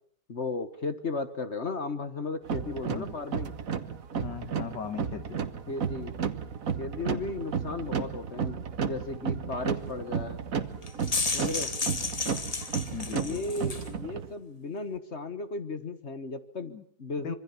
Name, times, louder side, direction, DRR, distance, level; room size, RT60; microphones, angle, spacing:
voice 1, 0.3-3.5 5.7-6.1 6.8-10.4 11.3-11.7 13.1-17.3, left 3 dB, 40° left, 1.5 m, -35 dB
sound 1, 2.4-14.3, right 6 dB, 50° right, 1.6 m, -33 dB
voice 2, 4.2-5.4 12.9-13.4 16.6-16.8 17.2-17.4, left 7 dB, 75° left, 2.2 m, -38 dB
sound 2, 10.8-13.9, left 4 dB, 25° left, 1.0 m, -32 dB
26.0 x 23.5 x 7.2 m
omnidirectional pair, 1.9 m